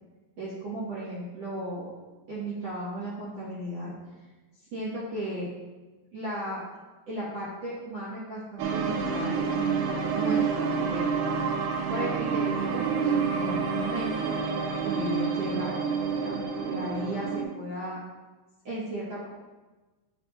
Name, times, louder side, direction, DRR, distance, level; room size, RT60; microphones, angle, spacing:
voice 1, 0.4-1.9 2.3-3.9 4.2-4.3 4.7-5.5 6.1-6.6 7.1-11.1 11.4-14.4 14.8-15.7 16.2-18.0 18.6-19.3, right 1 dB, 45° right, -9 dB, 2.3 m, -35 dB
sound 1, 8.6-17.4, right 5 dB, 85° right, 2.3 m, -28 dB
11.5 x 5.7 x 2.8 m, 1.2 s
omnidirectional pair, 5.4 m